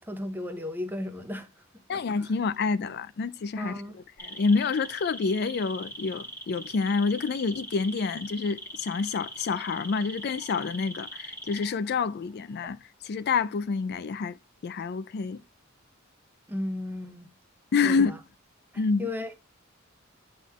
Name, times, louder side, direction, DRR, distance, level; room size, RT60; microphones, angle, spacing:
voice 1, 0.0-1.5 1.9-2.3 3.6-4.0 16.5-17.3 17.8-18.2 19.0-19.3, left 1 dB, 10° right, 0.8 m, -35 dB
voice 2, 1.9-3.8 4.2-12.8 13.0-14.4 14.6-15.4 17.7-18.2 18.8-19.1, left 4 dB, 50° left, 0.4 m, -28 dB
sound 1, 4.2-12.1 12.3-12.7, equal, 10° left, 1.6 m, -41 dB
9.2 x 3.7 x 3.1 m
head